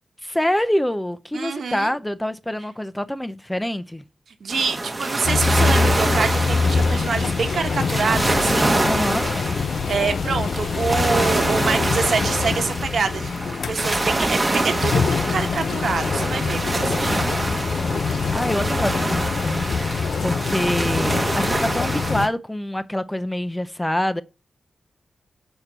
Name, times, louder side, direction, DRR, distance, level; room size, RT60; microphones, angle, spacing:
voice 1, 0.2-4.0 8.8-9.2 17.9-19.7 20.2-24.2, left 1 dB, 10° left, 0.6 m, -26 dB
voice 2, 1.3-1.9 4.4-8.8 9.9-13.3 13.7-17.2, right 5 dB, 75° right, 1.3 m, -26 dB
sound 1, 4.5-22.3, right 2 dB, 25° right, 1.1 m, -25 dB
sound 2, 5.2-22.3, left 5 dB, 75° left, 0.4 m, -25 dB
6.5 x 4.5 x 6.0 m
wide cardioid pair, 90°, 0 cm